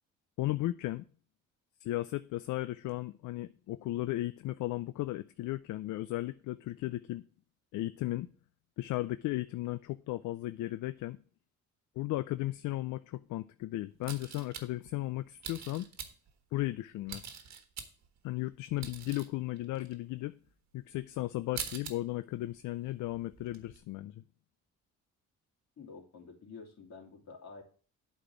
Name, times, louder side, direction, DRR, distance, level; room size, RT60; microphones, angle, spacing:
voice 1, 0.4-1.1 1.8-7.2 7.7-8.3 8.8-11.2 12.0-15.9 16.5-17.2 18.2-20.4 20.7-24.2, left 16 dB, 75° left, 0.5 m, -35 dB
sound 1, 14.0-14.9 15.4-16.3 17.1-18.2 18.5-19.3 19.6-19.9 20.5-20.6 21.0-21.1 21.3-21.9 22.3-22.5 22.8-23.8, right 7 dB, 65° right, 1.4 m, -43 dB
voice 2, 25.8-27.6, left 4 dB, 60° left, 2.9 m, -49 dB
8.2 x 4.3 x 7.0 m
cardioid pair, 90°, 30 cm